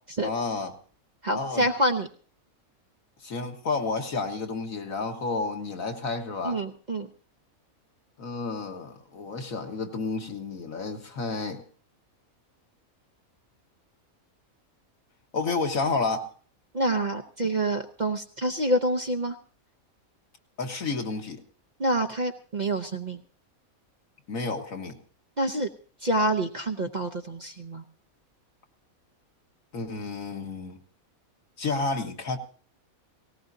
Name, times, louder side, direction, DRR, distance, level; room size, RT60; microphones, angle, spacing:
voice 1, 0.2-0.8 1.3-1.7 3.2-6.6 8.2-11.6 15.3-16.3 20.6-21.4 24.3-25.0 29.7-30.8 31.6-32.4, left 3 dB, 70° left, 1.9 m, -31 dB
voice 2, 1.2-2.1 6.4-7.1 16.7-19.3 21.8-23.2 25.4-25.7 26.0-27.8, right 1 dB, 40° right, 0.8 m, -27 dB
18.5 x 18.5 x 2.7 m
omnidirectional pair, 1.5 m